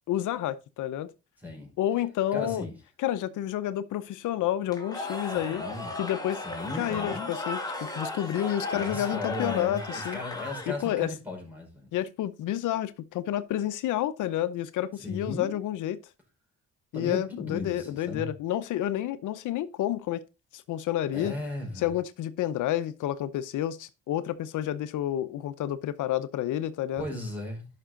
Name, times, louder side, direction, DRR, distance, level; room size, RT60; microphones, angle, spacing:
voice 1, 0.1-1.1 1.8-2.6 3.0-5.6 6.0-6.4 6.8-10.2 10.7-11.1 11.9-16.0 16.9-20.2 20.5-21.4 21.8-27.1, left 12 dB, 80° left, 0.8 m, -30 dB
voice 2, 1.4-1.7 2.3-2.8 5.3-6.0 6.4-7.3 8.7-11.9 15.0-15.6 16.9-18.3 21.1-21.9 27.0-27.7, left 2 dB, 5° right, 5.1 m, -36 dB
Cheering / Crowd, 4.7-11.0, left 2 dB, 15° left, 2.6 m, -36 dB
11.0 x 6.1 x 3.8 m
cardioid pair, 90°, 30 cm